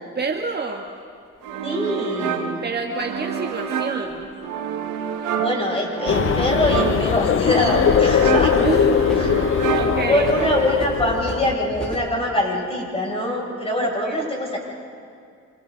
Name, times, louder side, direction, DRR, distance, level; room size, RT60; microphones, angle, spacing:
voice 1, 0.1-0.9 2.6-4.3 8.6-10.3 13.7-14.3, right 4 dB, 35° right, 2 dB, 1.7 m, -28 dB
sound 1, 1.4-1.5 3.0-4.3 6.5-7.5 7.8-12.1, equal, 5° left, 2.9 m, -37 dB
sound 2, 1.4-10.9, right 7 dB, 90° right, 1.9 m, -28 dB
voice 2, 1.6-2.6 5.4-8.7 9.2-9.3 10.1-14.6, left 1 dB, 20° left, -2 dB, 7.3 m, -23 dB
sound 3, 6.1-11.6, left 8 dB, 45° left, 0.7 m, -20 dB
28.0 x 26.5 x 4.1 m, 2.3 s
cardioid pair, 90°, 30 cm